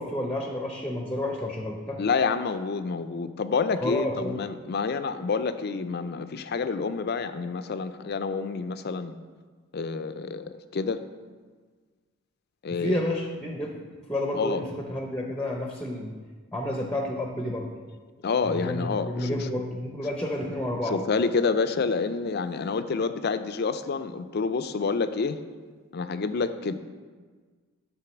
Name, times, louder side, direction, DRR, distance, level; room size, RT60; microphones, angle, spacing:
voice 1, 0.0-2.0 3.8-4.4 12.7-13.8 14.1-16.1 16.5-17.7 18.4-21.0, left 1 dB, 5° left, 1 dB, 0.6 m, -30 dB
voice 2, 2.0-9.2 9.7-11.0 12.6-13.0 14.4-14.6 18.2-19.5 20.9-25.4 25.9-26.7, left 4 dB, 50° left, 11 dB, 0.4 m, -28 dB
11.0 x 3.8 x 6.0 m, 1.5 s
head